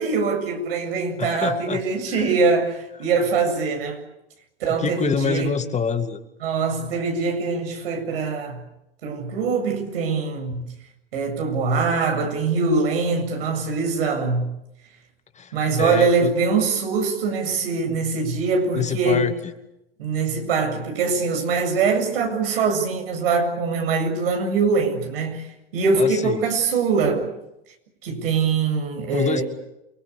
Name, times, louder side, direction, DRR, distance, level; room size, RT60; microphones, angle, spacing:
voice 1, 0.0-4.0 4.6-5.5 6.4-8.6 9.0-10.7 11.1-14.5 15.5-19.3 20.0-25.5 25.7-27.3 28.0-29.4, right 4 dB, 75° right, 7.7 m, -23 dB
voice 2, 1.2-1.8 2.1-2.3 4.7-6.2 15.3-16.3 18.7-19.3 26.0-26.4 29.1-29.4, left 6 dB, 25° left, 2.3 m, -26 dB
29.0 x 21.0 x 8.6 m
hypercardioid pair, 95°, 29 cm